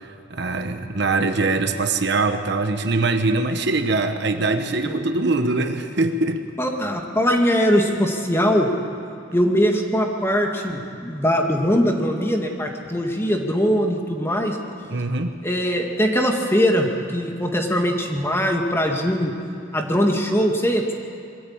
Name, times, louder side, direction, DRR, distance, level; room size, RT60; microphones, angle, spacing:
voice 1, 0.0-6.5 14.9-15.4, right 3 dB, 65° right, 7 dB, 1.2 m, -23 dB
voice 2, 6.6-8.7 9.3-14.6 15.4-19.3 19.7-20.9, equal, 15° left, 2 dB, 2.0 m, -21 dB
23.0 x 13.5 x 8.8 m, 2.6 s
head